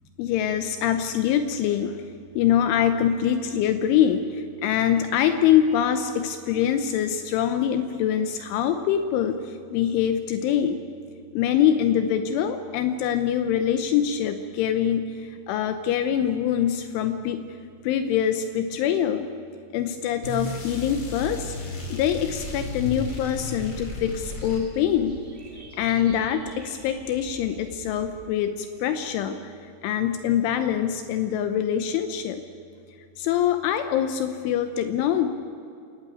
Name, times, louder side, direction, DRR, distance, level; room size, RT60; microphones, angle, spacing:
voice 1, 0.2-2.0 2.4-10.8 11.3-17.4 17.8-19.3 19.7-21.6 21.9-25.2 25.8-32.4 33.2-35.3, left 9 dB, 80° left, 8 dB, 3.3 m, -24 dB
sound 1, 20.2-25.0, left 2 dB, 30° left, 2.8 m, -34 dB
sound 2, 21.9-28.3, right 2 dB, 35° right, 0.8 m, -47 dB
28.5 x 17.5 x 9.1 m, 2.6 s
omnidirectional pair, 5.6 m